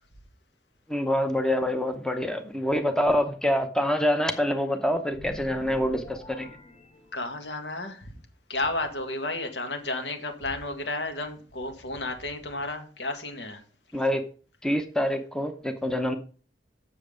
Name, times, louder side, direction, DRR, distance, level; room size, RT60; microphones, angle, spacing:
voice 1, 0.9-6.5 13.9-14.2 14.6-16.2, left 1 dB, 5° left, 0.8 m, -26 dB
sound 1, 5.1-7.7, left 2 dB, 30° left, 1.2 m, -45 dB
voice 2, 7.1-8.1 8.5-13.6, left 2 dB, 70° left, 1.8 m, -32 dB
7.7 x 7.0 x 5.1 m
head